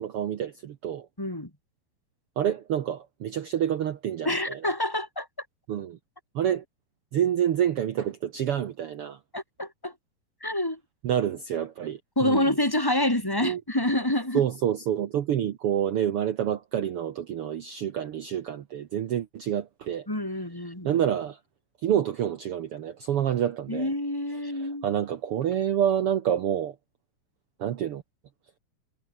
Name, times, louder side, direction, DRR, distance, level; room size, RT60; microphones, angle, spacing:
voice 1, 0.0-1.1 2.4-4.6 5.7-6.0 6.3-6.6 7.1-9.2 11.0-12.5 13.4-13.6 14.3-20.1 20.8-21.4 21.8-23.9 24.6-26.7 27.6-28.0, right 10 dB, 75° right, 1.3 m, -28 dB
voice 2, 1.2-1.5 4.2-5.3 9.3-9.9 10.4-10.8 12.2-14.4 20.1-21.0 23.7-24.9, left 1 dB, 5° left, 4.5 m, -27 dB
omnidirectional pair, 4.0 m